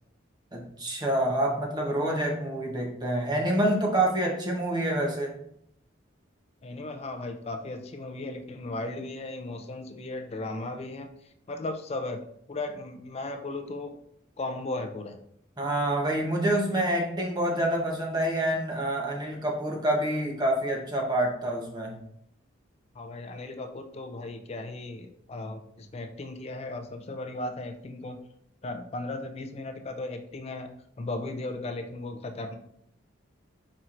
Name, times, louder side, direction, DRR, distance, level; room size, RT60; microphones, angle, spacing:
voice 1, 0.5-5.3 15.6-22.0, right 1 dB, 20° right, 0 dB, 0.8 m, -27 dB
voice 2, 6.6-11.1 11.5-13.9 14.4-15.2 23.0-28.2 28.6-30.7 31.0-32.6, left 2 dB, 30° left, 7 dB, 0.4 m, -36 dB
4.3 x 4.3 x 2.5 m, 0.72 s
head